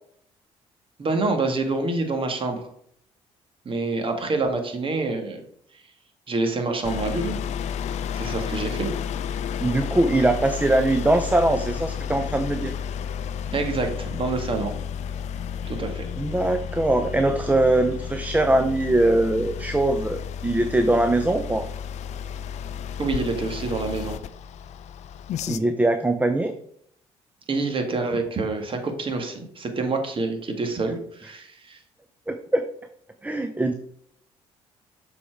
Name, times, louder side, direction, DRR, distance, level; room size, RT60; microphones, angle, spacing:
voice 1, 1.0-2.6 3.7-5.4 6.3-7.4 8.1-8.9 13.5-14.7 15.7-16.0 23.0-24.2 27.5-31.8, right 3 dB, 45° right, 5 dB, 1.8 m, -27 dB
sound 1, 6.8-25.6, left 8 dB, 65° left, 0.5 m, -32 dB
voice 2, 9.6-12.7 16.2-21.7 25.5-26.5 32.3-32.6 33.2-33.7, right 2 dB, 10° right, 7 dB, 0.7 m, -22 dB
7.0 x 4.4 x 4.6 m, 0.65 s
supercardioid pair, 60°, 13 cm